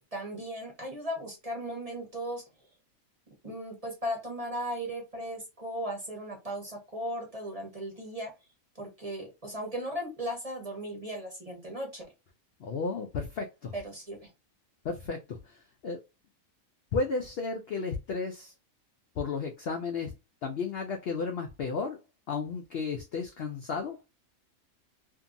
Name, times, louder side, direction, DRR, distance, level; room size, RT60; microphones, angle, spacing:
voice 1, 0.1-2.4 3.4-8.3 8.7-12.1 13.7-14.3, equal, 30° right, 1.0 m, -37 dB
voice 2, 12.6-13.7 14.8-16.0 16.9-18.5 19.2-20.1 20.4-22.0 22.3-24.0, left 4 dB, 65° left, 0.6 m, -33 dB
2.7 x 2.6 x 2.5 m
omnidirectional pair, 1.4 m